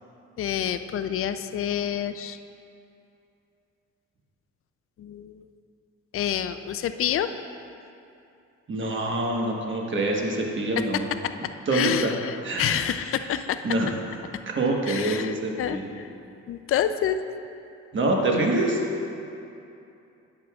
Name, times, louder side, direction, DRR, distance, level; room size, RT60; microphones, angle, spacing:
voice 1, 0.4-2.4 5.0-5.5 6.1-7.3 11.7-13.6 14.9-16.1 16.5-17.2, left 10 dB, 45° left, 10 dB, 0.4 m, -28 dB
voice 2, 8.7-11.1 11.7-12.1 12.4-12.8 13.6-13.9 14.5-15.9 17.9-18.8, right 2 dB, 40° right, 0 dB, 1.2 m, -25 dB
10.5 x 7.7 x 2.4 m, 2.7 s
cardioid pair, 90°, 30 cm